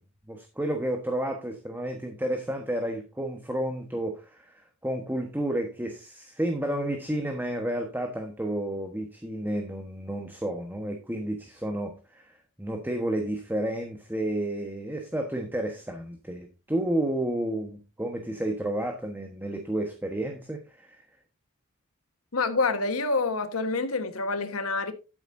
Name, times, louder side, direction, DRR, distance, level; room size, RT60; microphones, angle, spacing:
voice 1, 0.3-21.0, right 1 dB, 10° right, 1.2 m, -31 dB
voice 2, 22.3-24.9, left 3 dB, 85° left, 1.4 m, -27 dB
12.0 x 9.0 x 2.7 m
head